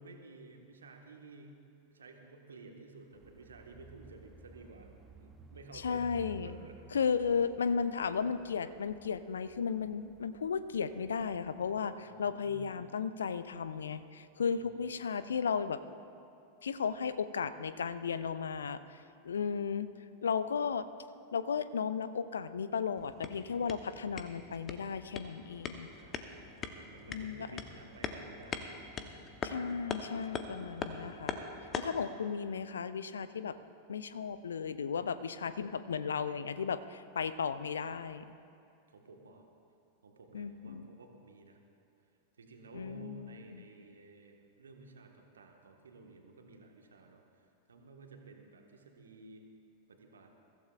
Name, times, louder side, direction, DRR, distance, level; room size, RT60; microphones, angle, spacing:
voice 1, 0.0-1.6 1.9-6.8 11.9-12.9 14.5-15.2 26.0-28.7 38.9-39.4 40.0-41.6 42.4-49.4 49.9-50.3, right 3 dB, 70° right, 2 dB, 1.5 m, -54 dB
sound 1, 3.1-11.8, right 3 dB, 15° right, 1.0 m, -57 dB
voice 2, 5.7-6.6 6.9-15.8 16.6-19.0 19.2-19.9 20.2-20.9 21.3-25.9 27.1-27.6 29.4-31.4 31.7-33.6 33.9-38.2 40.3-40.9 42.7-43.6, left 6 dB, 70° left, 13 dB, 0.5 m, -35 dB
sound 2, 23.0-32.0, left 5 dB, 30° left, 0.9 m, -42 dB
22.5 x 15.0 x 2.5 m, 2.6 s
figure-of-eight pair, 90°, 0 cm